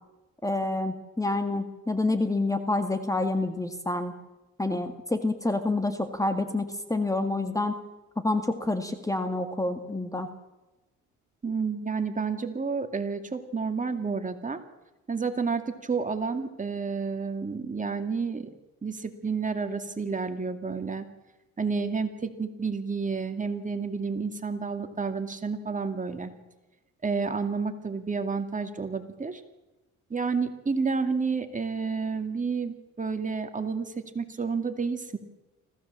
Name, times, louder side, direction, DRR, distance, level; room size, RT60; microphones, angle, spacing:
voice 1, 0.4-4.1 4.6-7.8 8.2-10.3, left 2 dB, 10° left, 8 dB, 2.0 m, -28 dB
voice 2, 11.4-14.6 15.1-18.5 18.8-21.0 21.6-26.3 27.0-29.4 30.1-35.2, right 5 dB, 25° right, 6 dB, 2.3 m, -30 dB
25.5 x 16.0 x 7.5 m, 1.0 s
cardioid pair, 90°, 30 cm